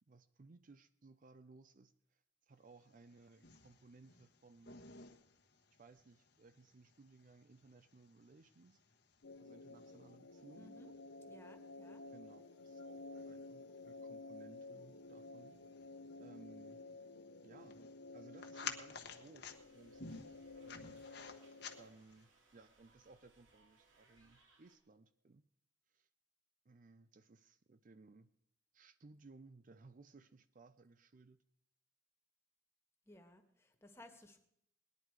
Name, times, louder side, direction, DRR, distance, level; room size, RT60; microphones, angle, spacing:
voice 1, 0.1-4.9 5.8-8.8 9.4-10.8 12.1-15.5 16.2-16.8 17.4-17.8 18.1-19.5 19.7-21.0 21.8-25.4 25.9-26.1 26.7-28.3 28.7-31.4, right 3 dB, 45° right, 11 dB, 0.5 m, -61 dB
sound 1, 2.8-22.2, left 6 dB, 55° left, 1.2 m, -55 dB
sound 2, 9.2-21.9, left 3 dB, 85° left, 0.9 m, -53 dB
voice 2, 10.6-10.9 11.3-12.0 33.1-34.4, left 1 dB, 15° left, 4 dB, 1.5 m, -59 dB
sound 3, 19.5-24.8, right 3 dB, 85° right, 2.6 m, -71 dB
19.5 x 10.5 x 4.7 m, 0.74 s
head